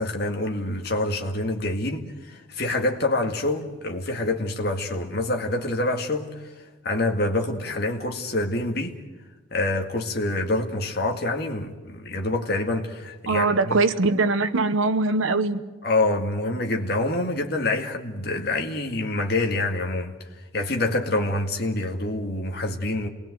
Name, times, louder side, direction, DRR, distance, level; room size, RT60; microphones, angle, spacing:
voice 1, 0.0-8.9 9.5-13.8 15.8-20.1 20.5-23.1, left 2 dB, 50° left, 2.1 m, -26 dB
voice 2, 13.3-15.6, right 3 dB, 80° right, 1.0 m, -22 dB
27.0 x 20.0 x 7.9 m
head